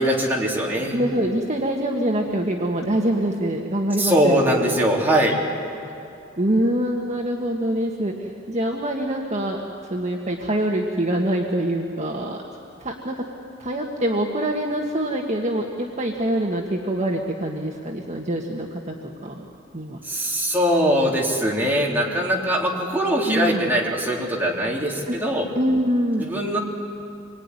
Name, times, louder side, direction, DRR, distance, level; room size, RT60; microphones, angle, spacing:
voice 1, 0.0-1.0 4.0-5.4 20.0-25.5 26.2-26.6, equal, 10° right, -3 dB, 3.7 m, -21 dB
voice 2, 0.9-4.7 6.3-9.6 9.9-12.4 12.8-13.2 13.6-18.9 19.2-19.5 19.7-20.0 23.3-23.6 25.1-25.2 25.6-26.2, right 1 dB, 35° right, 0 dB, 1.7 m, -24 dB
26.5 x 22.5 x 9.9 m, 2.6 s
head